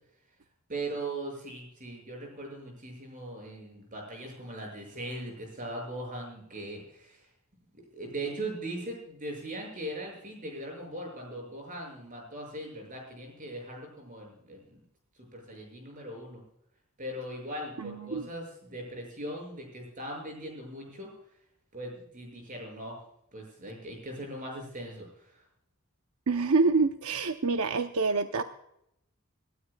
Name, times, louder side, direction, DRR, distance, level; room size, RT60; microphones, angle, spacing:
voice 1, 0.7-7.2 7.8-14.8 15.3-16.4 17.0-21.1 21.7-23.0 23.3-25.3, right 1 dB, 35° right, 0 dB, 6.5 m, -39 dB
voice 2, 17.8-18.3 26.3-28.4, right 4 dB, 80° right, 7 dB, 0.7 m, -26 dB
25.5 x 13.0 x 2.3 m, 0.77 s
head